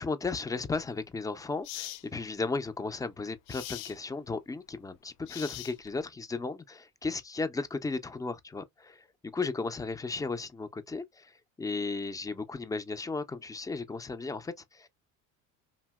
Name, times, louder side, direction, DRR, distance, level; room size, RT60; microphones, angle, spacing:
voice 1, 0.0-14.9, left 3 dB, 10° left, 0.4 m, -35 dB
sound 1, 0.8-0.9 1.6-2.0 3.5-4.0 5.3-6.0, left 15 dB, 65° left, 0.5 m, -41 dB
3.0 x 2.7 x 2.2 m
hypercardioid pair, 75°, 42 cm